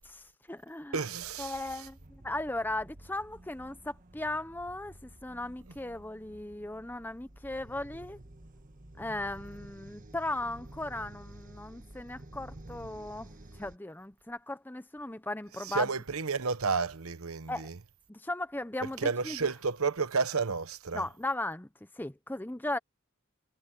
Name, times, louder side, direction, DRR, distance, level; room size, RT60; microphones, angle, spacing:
voice 1, 0.1-1.0 1.4-2.0 2.2-8.2 9.0-13.3 13.6-15.9 17.5-17.7 18.1-19.4 20.9-21.7 22.0-22.8, left 2 dB, 10° left, 0.7 m, -37 dB
voice 2, 0.9-1.9 15.6-17.8 19.0-21.1, right 4 dB, 80° right, 1.1 m, -31 dB
sound 1, 1.1-13.8, right 1 dB, 40° right, 1.4 m, -51 dB
head